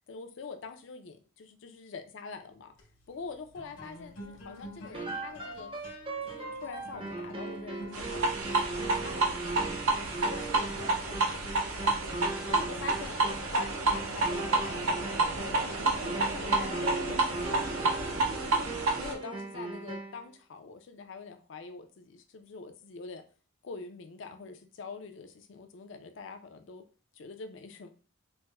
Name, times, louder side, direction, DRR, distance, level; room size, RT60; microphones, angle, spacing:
voice 1, 0.1-2.7 3.1-5.7 6.2-12.2 12.5-15.9 16.2-18.7 19.0-23.2 23.6-26.8 27.1-27.9, left 4 dB, 60° left, 7 dB, 0.4 m, -45 dB
sound 1, 2.6-12.2, left 1 dB, 80° left, 1.1 m, -50 dB
sound 2, 4.9-20.2, right 2 dB, 25° right, 0.5 m, -39 dB
sound 3, 7.9-19.1, right 3 dB, 85° right, 0.6 m, -30 dB
4.3 x 2.0 x 2.2 m, 0.36 s
head